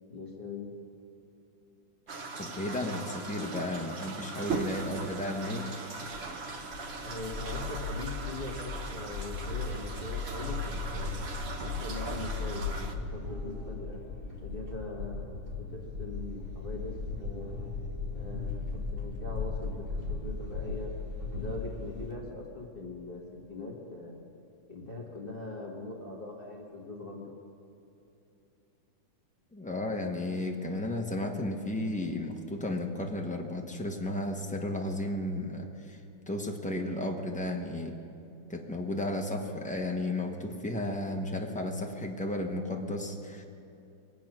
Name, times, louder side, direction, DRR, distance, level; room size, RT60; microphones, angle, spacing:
voice 1, 0.1-0.7 7.0-11.2 11.6-14.0 14.4-16.9 17.2-17.6 18.1-20.9 21.3-23.2 23.5-24.3 24.7-27.3, left 2 dB, 30° left, -2 dB, 1.8 m, -41 dB
sound 1, 2.1-13.0, right 4 dB, 50° right, 0.8 m, -39 dB
voice 2, 2.4-5.8 29.5-36.0 36.3-38.0 38.5-43.4, left 1 dB, 10° left, 1 dB, 0.4 m, -33 dB
sound 2, 6.1-22.1, left 4 dB, 30° right, 1.7 m, -37 dB
23.5 x 8.5 x 6.2 m, 2.7 s
omnidirectional pair, 2.2 m